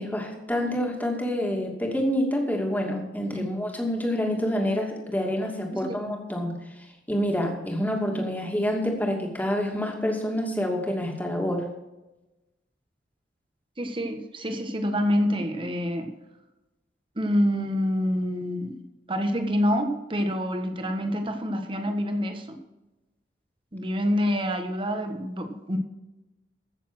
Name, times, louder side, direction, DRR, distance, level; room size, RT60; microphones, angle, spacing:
voice 1, 0.0-6.5 7.1-11.7, equal, 10° left, 1 dB, 2.5 m, -27 dB
voice 2, 13.8-16.1 17.2-18.8 19.1-22.6 23.7-25.8, equal, 30° right, 6 dB, 1.5 m, -27 dB
15.0 x 7.1 x 6.2 m, 1.0 s
head